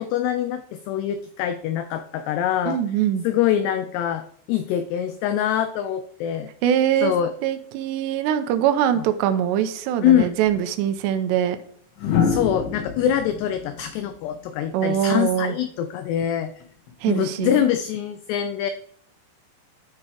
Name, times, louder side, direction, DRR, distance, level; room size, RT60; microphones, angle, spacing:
voice 1, 0.0-2.8 3.2-6.5 7.0-7.3 8.9-9.1 10.0-10.3 12.2-16.5 17.1-18.7, left 10 dB, 90° left, 10 dB, 2.3 m, -24 dB
voice 2, 2.7-3.3 6.6-7.1 7.4-11.6 14.7-15.6 17.0-17.6, right 10 dB, 75° right, 9 dB, 2.7 m, -22 dB
sound 1, 10.4-10.6 12.0-15.0 16.6-16.9, left 6 dB, 70° left, 2.7 m, -27 dB
12.5 x 5.3 x 4.6 m, 0.62 s
omnidirectional pair, 5.5 m